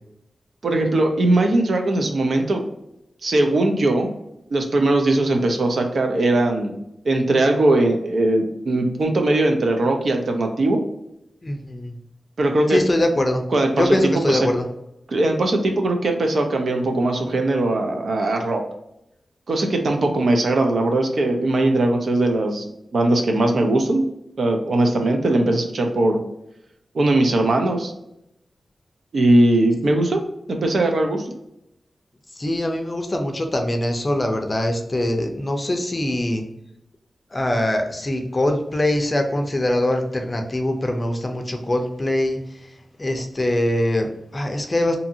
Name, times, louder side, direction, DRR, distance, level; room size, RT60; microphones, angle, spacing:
voice 1, 0.6-2.6 3.2-4.1 4.5-6.7 7.1-10.8 12.4-12.8 13.5-14.5 15.1-18.6 19.5-22.6 22.9-24.1 24.4-26.2 26.9-27.9 29.1-30.2 30.5-31.3, right 2 dB, 70° right, 3 dB, 0.5 m, -20 dB
voice 2, 11.4-11.9 12.7-13.4 13.7-14.7 32.4-36.4 37.3-42.4 43.0-45.0, left 1 dB, 30° left, 4 dB, 0.5 m, -23 dB
2.7 x 2.5 x 2.7 m, 0.82 s
wide cardioid pair, 90°, 0 cm